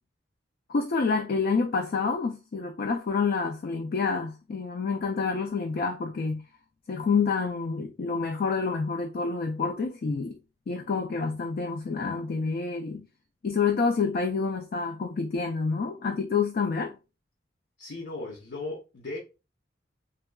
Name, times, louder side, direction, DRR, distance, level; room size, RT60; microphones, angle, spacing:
voice 1, 0.7-6.4 6.9-10.4 10.7-13.1 13.4-16.9, left 4 dB, 50° left, 0.4 m, -28 dB
voice 2, 17.8-19.2, left 2 dB, 75° left, 0.7 m, -37 dB
3.6 x 2.2 x 2.2 m
head